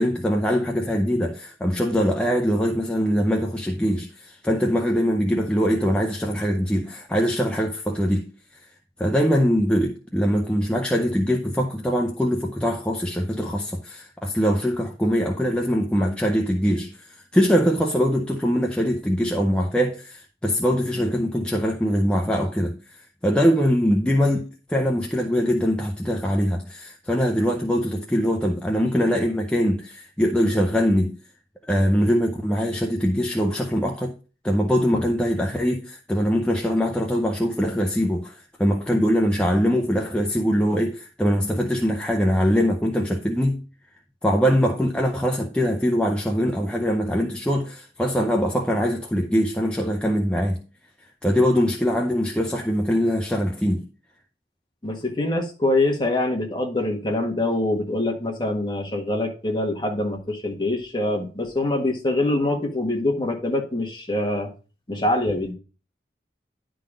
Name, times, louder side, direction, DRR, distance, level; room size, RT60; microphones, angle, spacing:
voice 1, 0.0-8.7 9.0-31.2 31.6-34.2 34.4-43.6 44.2-50.6 51.2-53.9, equal, 5° left, 0.6 m, -22 dB
voice 2, 54.8-64.5 64.9-65.5, left 2 dB, 25° left, 1.5 m, -24 dB
10.5 x 3.9 x 5.0 m
head